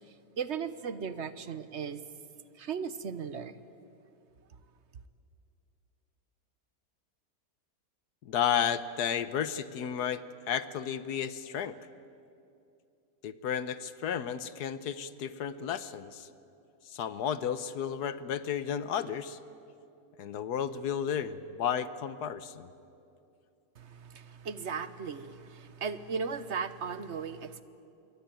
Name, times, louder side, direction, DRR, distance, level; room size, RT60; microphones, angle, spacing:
voice 1, 0.1-2.0 2.5-3.5 23.7-27.6, right 6 dB, 45° right, 13 dB, 1.2 m, -37 dB
voice 2, 8.2-11.8 13.2-16.3 16.9-19.4 20.2-22.7, left 8 dB, 75° left, 14 dB, 1.5 m, -33 dB
27.0 x 22.5 x 9.1 m, 2.6 s
omnidirectional pair, 1.7 m